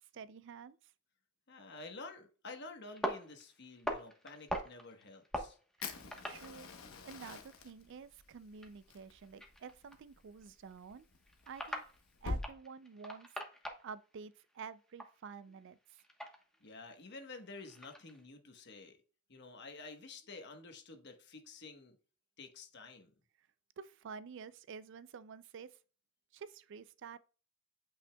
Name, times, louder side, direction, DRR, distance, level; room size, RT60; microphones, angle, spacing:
voice 1, 0.1-0.8 6.2-6.7 7.0-11.1 11.5-11.8 12.2-13.3 13.8-16.0 23.8-25.8 26.3-27.2, right 6 dB, 60° right, 0.4 m, -49 dB
voice 2, 1.5-5.6 16.6-19.0 19.3-22.0 22.4-23.1, left 3 dB, 55° left, 1.2 m, -50 dB
sound 1, 2.9-7.0 7.3-14.1 14.4-18.2, equal, 5° left, 1.1 m, -44 dB
Fire, 5.8-12.4, left 3 dB, 85° left, 1.0 m, -46 dB
8.8 x 5.3 x 2.3 m
head